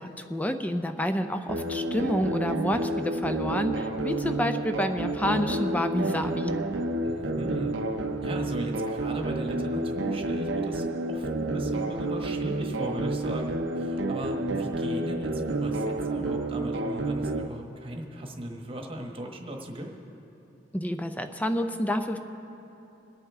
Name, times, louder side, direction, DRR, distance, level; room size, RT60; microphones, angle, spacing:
voice 1, 0.0-6.5 20.7-22.2, equal, 10° left, 8 dB, 0.5 m, -29 dB
sound 1, 1.5-17.5, right 2 dB, 85° right, 0.7 m, -30 dB
voice 2, 7.0-7.8 8.2-19.9, right 1 dB, 30° right, 2 dB, 1.2 m, -37 dB
26.5 x 8.9 x 3.6 m, 3.0 s
head